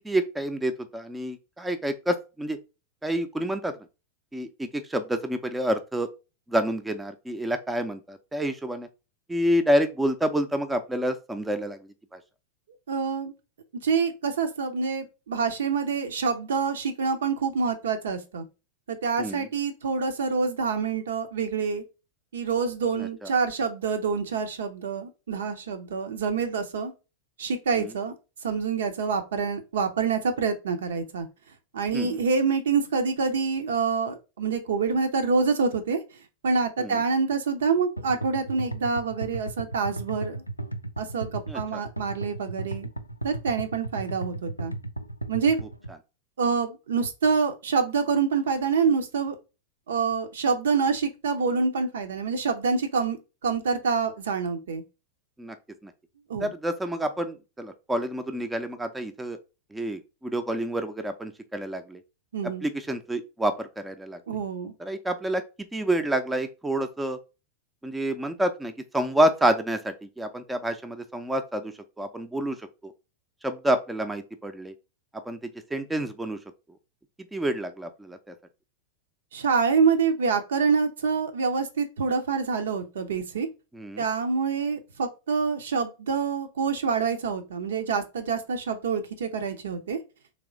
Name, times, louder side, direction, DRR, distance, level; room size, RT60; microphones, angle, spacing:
voice 1, 0.0-2.6 3.0-3.7 4.3-6.1 6.5-8.9 9.3-11.8 12.1-12.2 19.2-19.5 23.0-23.3 27.8-27.9 31.9-32.2 36.8-37.0 41.5-41.8 55.4-55.6 55.8-55.9 56.4-59.4 59.7-62.0 62.6-64.4 64.8-65.4 65.7-67.2 67.8-72.9 73.4-74.7 75.2-76.4 77.3-78.3 83.7-84.0, right 1 dB, 10° right, 0.5 m, -28 dB
voice 2, 12.9-13.3 13.8-18.4 18.9-21.8 22.3-26.9 27.4-28.1 28.4-31.3 31.7-36.0 36.4-40.4 41.0-42.9 43.2-44.7 45.3-45.6 46.4-49.4 49.9-53.2 53.4-54.8 56.3-56.5 62.3-62.6 64.3-64.7 79.3-83.5 84.0-90.0, right 5 dB, 65° right, 0.7 m, -26 dB
sound 1, 38.0-45.9, right 2 dB, 90° left, 0.4 m, -35 dB
3.4 x 3.0 x 3.7 m
figure-of-eight pair, 90°, 0 cm